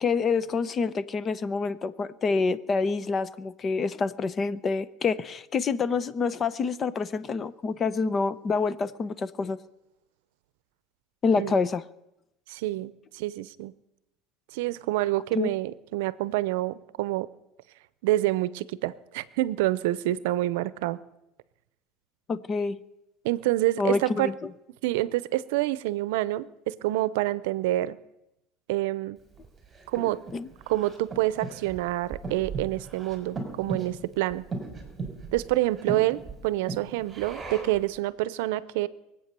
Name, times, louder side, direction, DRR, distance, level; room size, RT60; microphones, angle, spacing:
voice 1, 0.0-9.6 11.2-11.8 15.3-15.5 22.3-22.8 23.8-24.5 30.3-30.5, left 4 dB, 25° left, 16 dB, 0.7 m, -27 dB
voice 2, 12.5-13.7 14.5-17.3 18.0-21.0 23.2-24.3 24.8-28.0 28.7-29.2 29.9-30.2 30.7-34.5 35.3-38.9, right 16 dB, 85° right, 18 dB, 0.6 m, -27 dB
Breathing, 29.4-37.9, right 3 dB, 15° right, 3.8 m, -38 dB
23.0 x 8.4 x 6.8 m, 0.88 s
cardioid pair, 140°, 0 cm